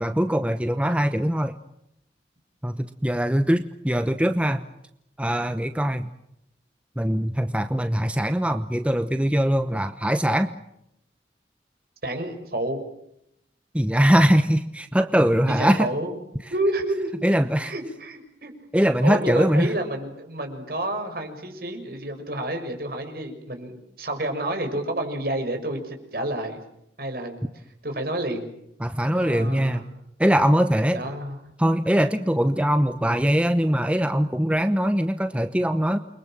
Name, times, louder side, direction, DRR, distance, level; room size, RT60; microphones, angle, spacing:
voice 1, 0.0-1.5 2.6-4.6 5.2-6.1 7.0-10.5 13.7-15.9 17.2-17.7 18.7-19.7 28.8-29.8 30.2-31.0 31.6-36.0, equal, 5° right, 9 dB, 0.9 m, -22 dB
voice 2, 12.0-12.8 15.5-16.2 16.5-17.3 17.6-18.5 19.0-26.6 27.0-28.5 29.1-29.9 30.9-31.4, right 1 dB, 55° right, 5 dB, 6.3 m, -29 dB
29.0 x 23.5 x 7.6 m, 0.79 s
head